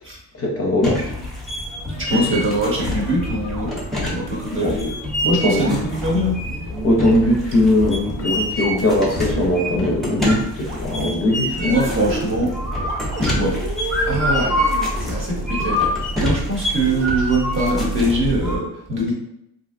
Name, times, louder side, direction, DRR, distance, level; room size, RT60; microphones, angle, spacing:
voice 1, 0.3-1.1 2.1-2.4 4.6-4.8 5.2-5.8 6.8-11.7, left 1 dB, 35° left, 0 dB, 0.5 m, -20 dB
sound 1, 0.8-18.6, left 1 dB, ahead, 0.6 m, -26 dB
voice 2, 1.9-4.9 5.2-6.4 11.6-12.5 13.2-13.6 14.0-19.1, right 1 dB, 30° right, -3 dB, 0.8 m, -23 dB
sound 2, 3.2-4.3 5.3-15.5 16.7-17.3, right 3 dB, 70° right, 0.8 m, -34 dB
3.2 x 2.6 x 2.5 m, 0.80 s
cardioid pair, 135°, 39 cm